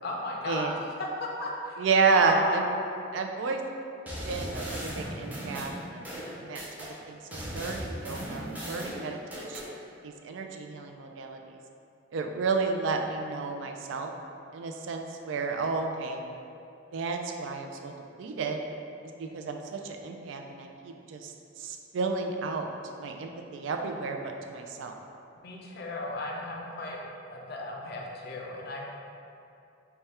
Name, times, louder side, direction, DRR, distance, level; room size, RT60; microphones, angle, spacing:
voice 1, 0.0-1.8 2.1-2.8 25.4-28.9, left 1 dB, 60° left, -1 dB, 0.5 m, -35 dB
voice 2, 1.8-2.8 3.1-3.6 4.2-9.7 10.0-11.4 12.1-14.1 14.5-16.2 16.9-17.9 18.2-18.6 19.2-21.3 21.6-22.7 23.0-24.9, right 4 dB, 80° right, 4 dB, 0.3 m, -31 dB
sound 1, 4.1-6.9 7.3-9.7, equal, 10° right, 0.5 m, -37 dB
3.4 x 2.3 x 4.2 m, 2.6 s
head